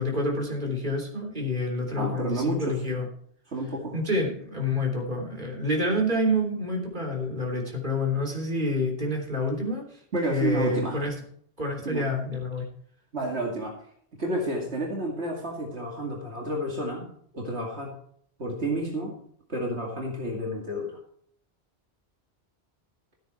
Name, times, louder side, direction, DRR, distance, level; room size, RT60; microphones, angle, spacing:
voice 1, 0.0-3.1 3.9-10.0 10.3-11.1 11.6-12.7, left 1 dB, 45° right, 0 dB, 3.5 m, -28 dB
voice 2, 2.0-2.8 3.5-3.9 10.1-11.0 11.8-12.1 13.1-13.8 14.1-17.9 18.4-19.2 19.5-21.0, right 1 dB, 75° right, -1 dB, 2.7 m, -30 dB
14.0 x 9.2 x 4.5 m, 0.62 s
omnidirectional pair, 1.1 m